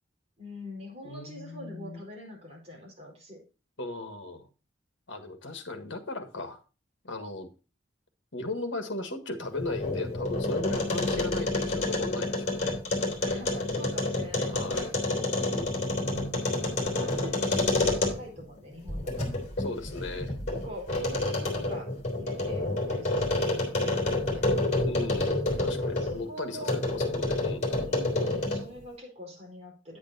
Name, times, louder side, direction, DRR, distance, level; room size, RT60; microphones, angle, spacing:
voice 1, 0.4-3.4 13.2-14.9 16.7-19.3 20.5-21.9 22.1-24.5 25.9-26.8 27.9-30.0, equal, 35° right, -2 dB, 4.5 m, -44 dB
voice 2, 1.0-2.0 3.8-4.5 5.1-6.6 7.0-7.5 8.3-12.8 14.5-14.9 15.5-16.5 19.6-20.4 24.8-27.8, left 2 dB, 75° left, 6 dB, 1.6 m, -37 dB
sound 1, 9.4-18.4 18.9-26.2 26.6-28.8, left 2 dB, 35° left, 3.6 m, -29 dB
9.6 x 8.7 x 2.7 m, 0.32 s
head